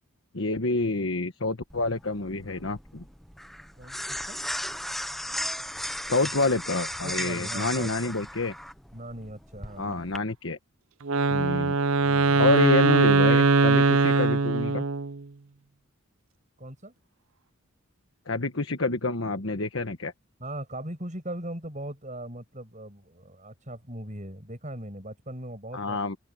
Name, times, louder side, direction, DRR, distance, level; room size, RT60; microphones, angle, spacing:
voice 1, 0.3-3.0 6.0-8.5 9.8-10.6 11.3-11.8 12.4-14.8 18.3-20.1 25.7-26.2, left 2 dB, 60° left, 1.4 m, -28 dB
sound 1, 1.7-10.2, equal, ahead, 0.8 m, -36 dB
voice 2, 3.7-4.4 7.0-8.2 8.9-10.1 16.6-16.9 20.4-26.0, right 1 dB, 35° right, 7.8 m, -39 dB
Wind instrument woodwind instrument, 11.0-15.2, right 3 dB, 65° right, 0.6 m, -21 dB
open air
head